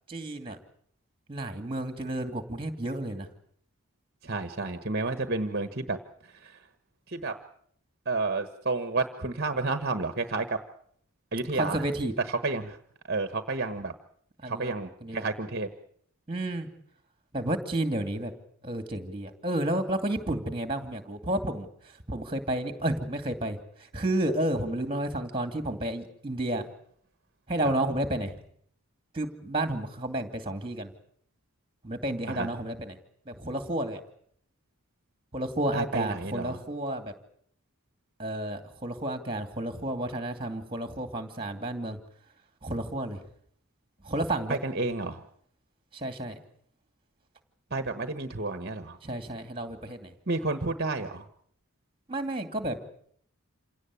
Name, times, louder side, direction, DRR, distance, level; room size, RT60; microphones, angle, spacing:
voice 1, 0.1-0.6 1.3-3.3 11.5-12.1 14.4-14.7 15.0-15.3 16.3-16.7 17.3-18.3 18.6-26.6 27.5-28.4 29.1-30.9 31.8-33.0 33.3-34.0 35.3-37.1 38.2-42.0 42.6-43.2 44.0-44.6 45.9-46.4 49.0-50.1 52.1-52.8, right 1 dB, 25° right, 8 dB, 2.5 m, -31 dB
voice 2, 4.2-6.0 6.3-6.6 7.1-7.4 8.0-10.6 11.3-11.8 12.3-12.8 13.1-13.9 14.5-15.7 32.3-32.5 35.7-36.6 44.5-45.2 47.7-49.0 50.3-51.3, right 3 dB, 45° right, 9 dB, 1.3 m, -31 dB
27.5 x 17.5 x 8.4 m, 0.65 s
head